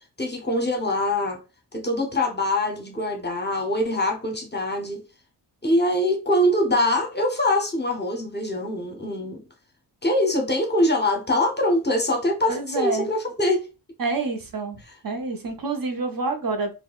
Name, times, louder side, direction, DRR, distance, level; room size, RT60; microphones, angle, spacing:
voice 1, 0.2-1.4 1.7-5.0 5.6-9.4 10.0-13.6, left 1 dB, 25° left, 0.6 m, -23 dB
voice 2, 12.5-13.1 14.0-14.8 15.0-16.7, right 3 dB, 55° right, 0.7 m, -27 dB
4.6 x 2.1 x 2.3 m
wide cardioid pair, 140°, 41 cm